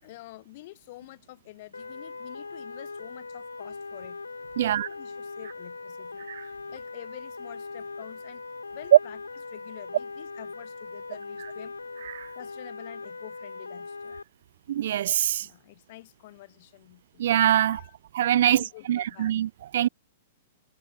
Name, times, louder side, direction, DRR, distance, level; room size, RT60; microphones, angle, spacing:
voice 1, 0.0-4.2 4.6-6.3 6.7-8.4 8.7-9.2 9.5-11.7 12.3-14.1 15.4-17.2 17.6-17.9 18.4-19.3, left 18 dB, 50° left, 6.6 m, -47 dB
sound 1, 1.7-14.2, left 4 dB, 90° left, 0.9 m, -40 dB
voice 2, 4.6-4.9 6.3-6.5 8.9-9.0 12.0-12.3 14.7-15.5 17.2-17.8 18.1-19.9, right 11 dB, 65° right, 0.5 m, -23 dB
hypercardioid pair, 110°, 0 cm